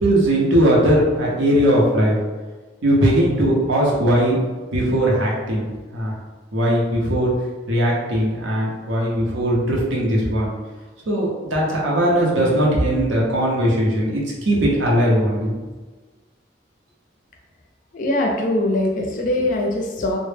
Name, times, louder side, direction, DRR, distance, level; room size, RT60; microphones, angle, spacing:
voice 1, 0.0-2.2 2.8-4.4 4.7-5.7 5.9-6.1 6.5-7.3 7.7-10.5 11.1-15.5, equal, 85° right, -4 dB, 0.7 m, -19 dB
voice 2, 17.9-20.2, left 1 dB, 45° left, 0 dB, 0.4 m, -22 dB
2.0 x 2.0 x 3.2 m, 1.3 s
head